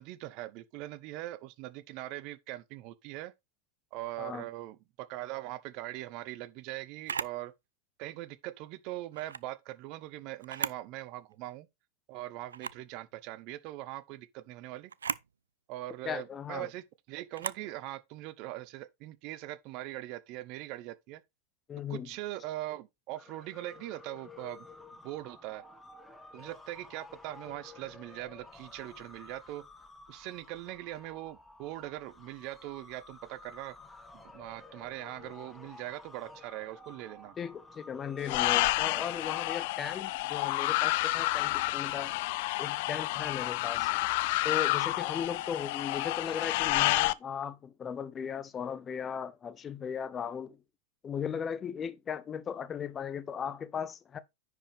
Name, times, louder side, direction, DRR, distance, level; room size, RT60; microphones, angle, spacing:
voice 1, 0.0-3.3 3.9-7.5 8.0-11.7 12.1-14.9 15.7-21.2 21.9-24.6 25.0-25.6 26.3-29.6 30.1-33.7 34.1-37.3, right 16 dB, 50° right, 0.7 m, -41 dB
Camera, 7.0-7.4 9.1-9.5 10.4-10.9 11.3-11.4 12.5-12.9 14.9-15.3 17.3-17.7, right 6 dB, 85° right, 0.3 m, -36 dB
voice 2, 16.0-16.7 21.7-22.2 37.4-42.1 42.6-43.9 44.4-50.6 51.0-54.2, left 7 dB, 25° left, 0.7 m, -37 dB
sound 1, 23.1-39.6, left 3 dB, 10° left, 1.4 m, -52 dB
sound 2, 38.2-47.1, left 19 dB, 55° left, 0.4 m, -30 dB
10.0 x 4.7 x 3.4 m
hypercardioid pair, 100°, 0 cm